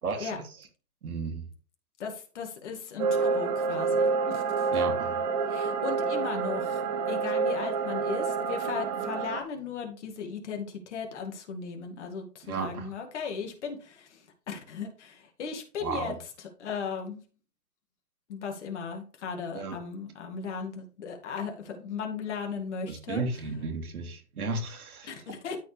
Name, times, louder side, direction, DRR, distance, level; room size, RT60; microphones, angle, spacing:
voice 1, 0.0-0.4 1.0-1.5 4.7-5.2 12.4-12.9 15.8-16.1 19.5-19.8 22.9-25.1, right 4 dB, 65° right, 3 dB, 3.0 m, -33 dB
voice 2, 2.0-4.7 5.5-17.2 18.3-23.2 25.0-25.6, left 5 dB, 45° left, 3 dB, 2.3 m, -37 dB
sound 1, 3.0-9.4, right 5 dB, 25° right, 0.9 m, -28 dB
13.0 x 4.6 x 3.4 m, 0.37 s
hypercardioid pair, 150°, 47 cm